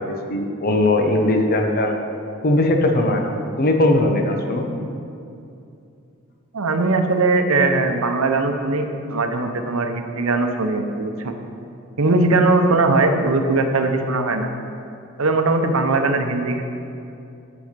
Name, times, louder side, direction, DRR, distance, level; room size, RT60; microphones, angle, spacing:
voice 1, 0.0-2.0 2.4-4.7, left 1 dB, 45° left, 3 dB, 0.8 m, -19 dB
voice 2, 6.5-11.4 12.0-14.5 15.2-16.6, right 3 dB, 70° right, 6 dB, 0.7 m, -20 dB
8.1 x 7.1 x 5.2 m, 2.6 s
head